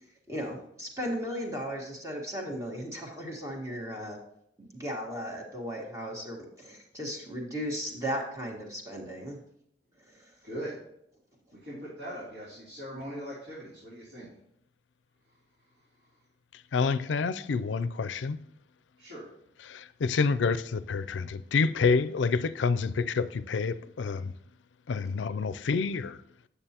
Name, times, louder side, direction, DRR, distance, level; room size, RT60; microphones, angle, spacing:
voice 1, 0.3-4.2 4.7-9.4 10.1-10.3, equal, 15° right, 1.5 m, -36 dB
voice 2, 10.4-10.8 11.5-14.3 16.0-16.1 19.0-19.3, equal, 65° right, 3.0 m, -40 dB
voice 3, 16.5-18.5 19.7-24.3 24.9-26.2, left 4 dB, 85° left, 0.4 m, -28 dB
9.0 x 6.9 x 2.9 m
head